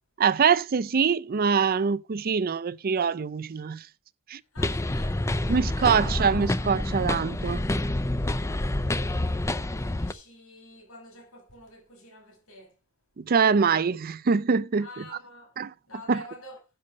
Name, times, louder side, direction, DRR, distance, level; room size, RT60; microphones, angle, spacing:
voice 1, 0.2-3.8 4.3-4.4 5.5-7.7 13.2-15.0 15.6-15.7 16.1-16.2, right 6 dB, 45° right, 0.5 m, -24 dB
voice 2, 4.5-6.1 8.8-9.3 9.6-12.8 14.8-15.6 15.9-16.6, left 1 dB, 80° left, 5.8 m, -48 dB
sound 1, 4.6-10.1, left 1 dB, 15° left, 0.5 m, -28 dB
10.5 x 7.0 x 5.2 m
head